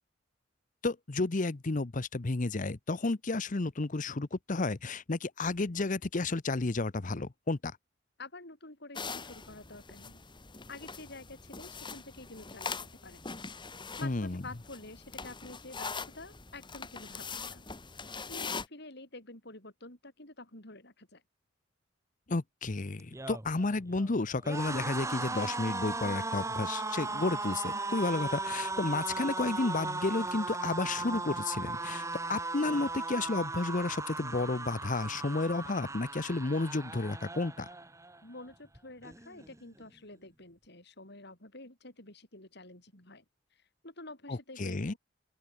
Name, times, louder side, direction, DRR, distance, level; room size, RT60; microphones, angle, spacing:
voice 1, 0.8-7.7 14.0-14.4 22.3-37.7 44.3-44.9, left 3 dB, 40° left, 0.8 m, -32 dB
voice 2, 8.2-10.2 10.7-13.2 14.0-17.7 18.3-21.2 38.2-43.2 43.5-45.0, left 2 dB, 60° left, 7.9 m, -49 dB
sound 1, 9.0-18.7, left 5 dB, 25° left, 1.8 m, -42 dB
sound 2, 23.0-38.2 38.5-38.8 39.0-39.8, right 3 dB, 15° right, 2.1 m, -37 dB
open air
head